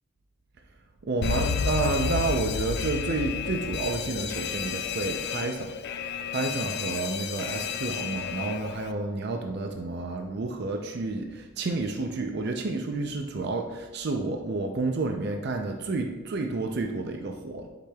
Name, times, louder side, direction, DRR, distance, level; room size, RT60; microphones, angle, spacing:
voice 1, 1.0-17.7, right 3 dB, 50° right, 3 dB, 0.5 m, -30 dB
Alarm, 1.2-8.9, left 7 dB, 50° left, 0.3 m, -31 dB
10.5 x 5.0 x 2.3 m, 1.2 s
head